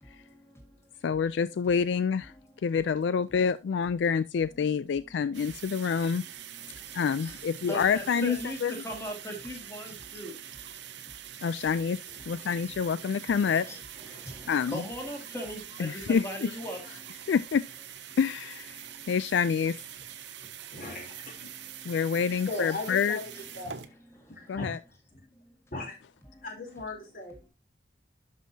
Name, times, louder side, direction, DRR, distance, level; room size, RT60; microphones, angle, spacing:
voice 1, 0.0-1.0 2.3-2.8 5.4-5.5 6.5-11.5 12.1-17.3 18.7-19.2 20.2-20.5 21.5-22.7 23.3-23.4 23.7-24.6 25.2-25.5 26.3-26.5 27.4-27.5, equal, 15° left, 2.0 m, -42 dB
voice 2, 1.0-2.3 2.6-6.2 6.9-8.7 11.4-12.0 12.3-13.7 14.5-14.8 15.8-16.5 17.3-17.6 18.2-18.8 19.1-19.8 21.9-23.2 24.5-24.8, left 6 dB, 80° left, 0.3 m, -27 dB
sound 1, 5.3-23.9, right 10 dB, 75° right, 0.8 m, -44 dB
voice 3, 20.7-21.5 22.3-23.8 24.3-24.7 25.7-25.9 26.4-27.4, left 2 dB, 50° left, 3.2 m, -38 dB
11.5 x 5.5 x 2.7 m
head